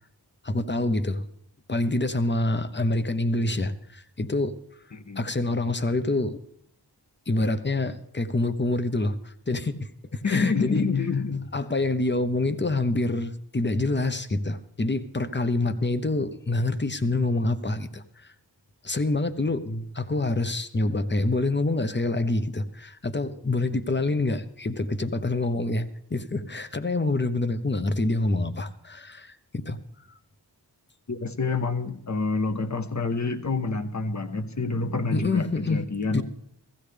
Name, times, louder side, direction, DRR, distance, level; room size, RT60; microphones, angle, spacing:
voice 1, 0.4-1.2 1.7-4.6 5.2-6.4 7.3-9.9 10.3-10.9 11.5-18.3 18.8-19.7 19.9-29.8 35.1-35.8 36.1-36.2, left 2 dB, 25° left, 11 dB, 0.8 m, -26 dB
voice 2, 4.9-5.3 10.2-11.4 15.6-15.7 19.6-19.8 31.1-36.2, left 4 dB, 45° left, 9 dB, 1.1 m, -27 dB
15.5 x 15.5 x 3.4 m, 0.72 s
wide cardioid pair, 60°, 41 cm